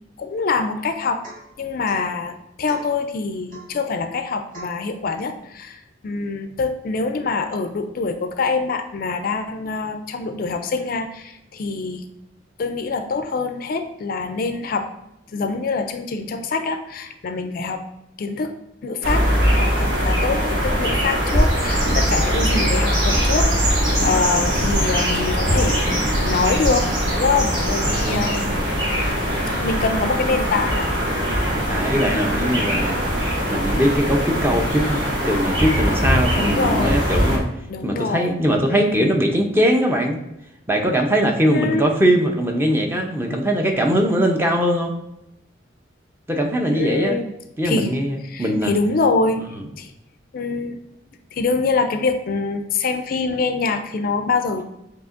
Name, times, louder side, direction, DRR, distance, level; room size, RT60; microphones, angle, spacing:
voice 1, 0.2-1.2 1.6-12.0 12.6-14.9 15.3-17.8 18.2-18.5 18.8-26.9 27.1-28.6 29.6-30.9 36.4-37.0 37.7-38.3 38.7-39.1 41.5-41.9 46.7-47.3 47.6-49.9 50.3-50.8 51.3-54.6, left 4 dB, 50° left, 8 dB, 0.4 m, -25 dB
Domestic sounds home sounds / Chink clink / Drip, 1.2-1.5 1.8-2.1 2.7-3.0 3.5-3.8 4.5-4.8, right 2 dB, 50° right, 1.7 m, -40 dB
sound 1, 19.0-37.4, equal, 70° right, 1.4 m, -21 dB
voice 2, 27.9-28.5 31.7-32.9 33.5-37.4 37.8-40.2 40.7-44.9 46.3-47.2 47.6-48.7, equal, 15° right, 2 dB, 0.5 m, -21 dB
7.6 x 2.8 x 2.5 m, 0.86 s
head